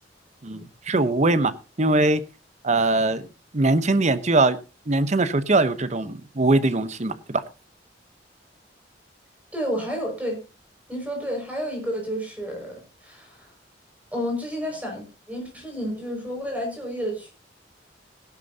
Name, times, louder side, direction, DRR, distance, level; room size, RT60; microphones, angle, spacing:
voice 1, 0.4-2.2 2.6-3.2 3.5-4.6 4.9-7.4, right 2 dB, 40° right, 13 dB, 0.9 m, -21 dB
voice 2, 9.5-10.4 10.9-13.5 14.1-17.3, equal, 10° right, 1 dB, 5.7 m, -30 dB
17.0 x 12.0 x 2.8 m, 0.30 s
head